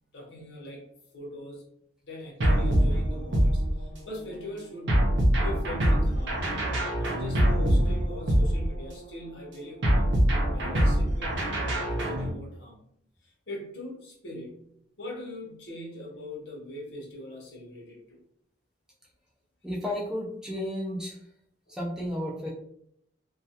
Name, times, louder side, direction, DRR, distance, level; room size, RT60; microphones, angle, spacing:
voice 1, 0.1-0.8 1.1-1.6 2.0-5.2 5.4-6.4 7.0-12.8 13.2-14.7 15.0-18.2, left 1 dB, 70° left, -2 dB, 0.9 m, -41 dB
sound 1, 2.4-4.1 4.9-9.1 9.8-12.3, equal, 75° right, 0.6 m, -24 dB
voice 2, 19.6-21.2 21.7-22.5, left 1 dB, 5° right, -4 dB, 0.4 m, -32 dB
2.3 x 2.3 x 2.7 m, 0.70 s
head